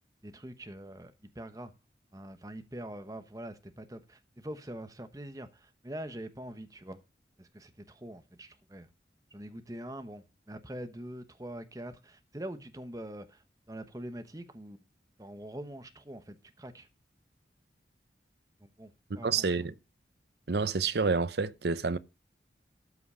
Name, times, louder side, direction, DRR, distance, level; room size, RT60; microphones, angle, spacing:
voice 1, 0.2-1.7 2.1-7.0 7.4-8.9 9.3-14.8 15.2-16.9 18.6-19.7, right 1 dB, 20° right, 0.9 m, -44 dB
voice 2, 19.2-19.7 20.5-22.0, right 4 dB, 70° right, 0.7 m, -28 dB
13.0 x 5.8 x 5.5 m
head